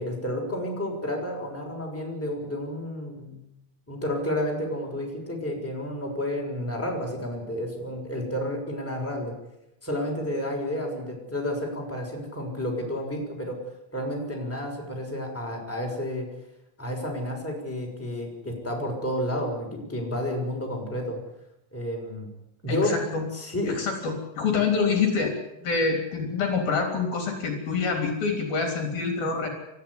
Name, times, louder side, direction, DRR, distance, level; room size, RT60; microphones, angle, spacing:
voice 1, 0.0-3.4 3.9-9.3 9.8-13.6 13.9-16.3 16.8-21.2 21.7-22.3 22.6-23.0 23.3-23.8 24.5-24.6, left 1 dB, 5° left, -1 dB, 6.2 m, -31 dB
voice 2, 22.7-23.2 23.7-25.3 25.6-29.5, left 4 dB, 55° left, 3 dB, 5.1 m, -26 dB
30.0 x 14.0 x 9.9 m, 0.89 s
omnidirectional pair, 5.0 m